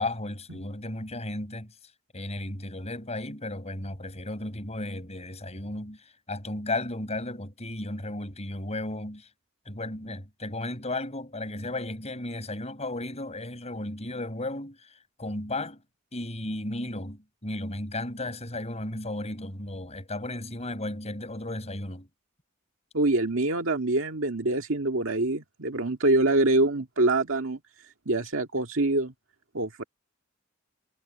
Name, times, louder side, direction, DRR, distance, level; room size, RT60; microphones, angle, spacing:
voice 1, 0.0-1.7 2.1-9.3 9.7-14.8 15.2-15.8 16.1-22.1, left 2 dB, 35° left, 7.6 m, -34 dB
voice 2, 22.9-27.6 28.1-29.1 29.5-29.8, right 2 dB, 80° right, 2.0 m, -25 dB
head